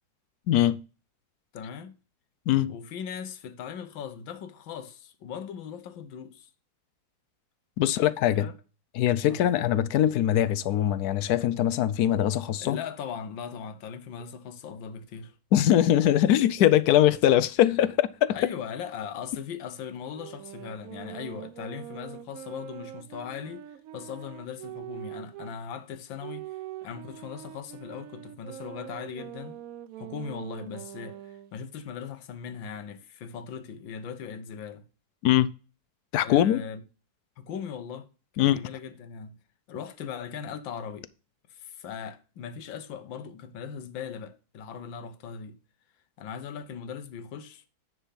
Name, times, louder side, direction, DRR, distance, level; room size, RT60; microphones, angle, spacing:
voice 1, 0.5-0.8 2.5-2.7 7.8-8.5 8.9-12.8 15.5-18.4 35.2-35.5 36.1-36.6 38.4-38.7, left 12 dB, 70° left, 0.9 m, -22 dB
voice 2, 1.5-2.0 2.7-6.5 7.8-8.5 9.2-9.4 12.6-15.4 18.3-23.6 23.9-29.6 30.0-34.9 36.2-36.8 37.4-38.1 38.4-39.4 39.7-41.1 41.5-45.6 46.2-47.6, left 7 dB, 90° left, 1.7 m, -39 dB
sound 1, 20.1-25.6 26.2-31.5, right 13 dB, 75° right, 0.8 m, -43 dB
10.0 x 4.5 x 5.6 m
omnidirectional pair, 2.0 m